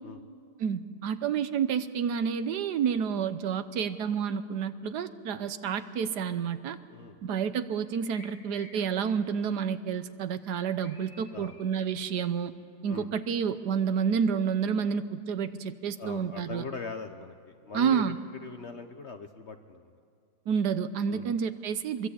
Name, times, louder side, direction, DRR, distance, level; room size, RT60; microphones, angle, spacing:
voice 1, 0.6-6.8 7.2-12.5 12.8-16.6 17.7-18.2 20.5-22.1, right 7 dB, 70° right, 12 dB, 1.3 m, -29 dB
sound 1, 8.1-8.9 10.4-11.9, equal, 70° left, 7.1 m, -52 dB
voice 2, 16.0-18.1 18.4-19.9 21.1-21.3, left 4 dB, 50° left, 7 dB, 0.9 m, -41 dB
23.0 x 22.5 x 8.5 m, 2.2 s
omnidirectional pair, 1.9 m